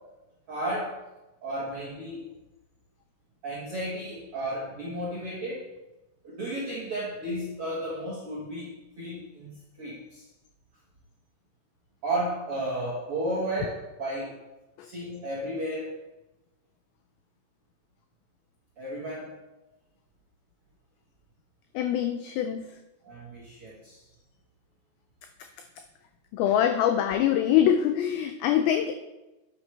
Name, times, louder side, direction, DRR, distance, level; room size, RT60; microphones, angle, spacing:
voice 1, 0.5-1.0 1.4-2.3 3.4-5.7 6.2-10.3 12.0-14.3 14.8-15.9 18.8-19.4 23.0-24.0, right 1 dB, 70° right, -6 dB, 1.3 m, -33 dB
voice 2, 21.7-22.8 25.4-25.5 26.3-28.9, left 10 dB, 90° left, 7 dB, 2.1 m, -24 dB
9.1 x 8.3 x 3.3 m, 1.0 s
omnidirectional pair, 4.8 m